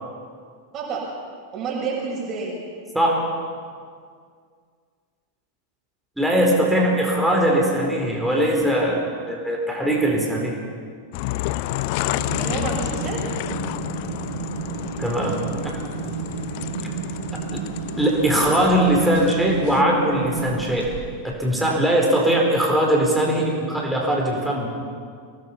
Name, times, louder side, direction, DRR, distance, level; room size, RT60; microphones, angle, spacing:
voice 1, 0.7-1.1 1.5-2.6 12.4-13.2 20.1-20.5, right 4 dB, 30° right, -2 dB, 6.5 m, -29 dB
voice 2, 2.9-3.3 6.2-10.6 15.0-15.8 16.8-16.9 17.5-17.7 18.0-20.9 21.2-24.7, right 1 dB, ahead, -2 dB, 4.5 m, -21 dB
sound 1, 11.1-19.8, left 16 dB, 45° left, 0.6 m, -30 dB
sound 2, 12.1-21.3, right 5 dB, 75° right, 4.0 m, -32 dB
24.0 x 19.0 x 5.8 m, 2.1 s
figure-of-eight pair, 90°, 0 cm